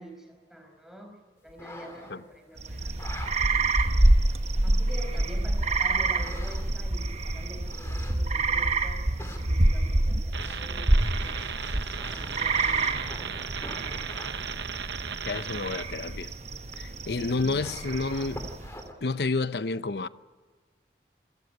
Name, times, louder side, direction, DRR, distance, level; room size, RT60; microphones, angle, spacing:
voice 1, 0.0-2.9 3.4-3.8 4.6-11.5 12.1-13.1 13.6-14.3 17.2-17.6, equal, 5° right, 5.0 m, -46 dB
sound 1, 1.5-2.4 2.9-3.3 4.1-4.2 6.1-6.8 7.6-8.4 9.0-9.4 10.4-14.4 16.7-16.8 17.2-18.9, left 1 dB, 15° left, 3.0 m, -44 dB
sound 2, 2.6-18.8, right 2 dB, 40° right, 1.0 m, -27 dB
sound 3, 10.3-15.9, right 7 dB, 90° right, 1.0 m, -36 dB
voice 2, 15.3-16.3 16.8-18.5 19.0-20.1, left 3 dB, 70° left, 0.7 m, -30 dB
27.5 x 15.0 x 9.2 m
head